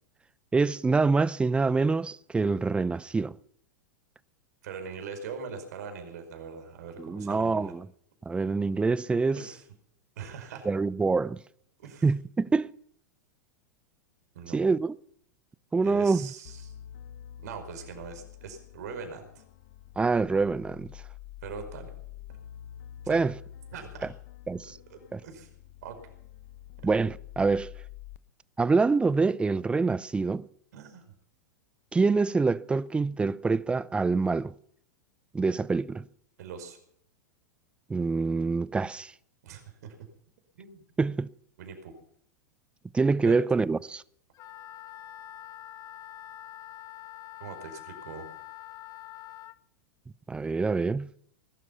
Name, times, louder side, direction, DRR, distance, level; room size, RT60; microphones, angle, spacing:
voice 1, 0.5-3.3 7.0-7.9 8.3-9.4 10.6-11.4 12.0-12.7 14.5-14.9 15.7-16.3 20.0-20.9 23.1-23.3 24.5-24.8 25.1-25.2 26.8-27.7 28.6-30.5 31.9-34.5 35.3-36.0 37.9-39.1 41.0-41.3 42.9-44.0 50.3-51.1, right 4 dB, 10° right, 0.6 m, -25 dB
voice 2, 4.6-7.7 9.3-9.6 10.2-10.7 11.8-12.1 14.3-14.6 15.8-16.7 17.4-19.4 21.4-21.9 23.0-23.2 23.7-24.1 24.9-25.5 25.8-26.0 30.7-31.0 36.4-36.8 39.4-39.9 40.6-40.8 41.6-41.9 43.2-43.4 47.4-48.3, right 6 dB, 65° right, 4.9 m, -41 dB
sound 1, 16.5-28.2, left 11 dB, 60° left, 1.1 m, -47 dB
Wind instrument woodwind instrument, 44.3-49.6, left 13 dB, 35° left, 0.8 m, -45 dB
20.5 x 12.0 x 5.7 m
hypercardioid pair, 95°, 10 cm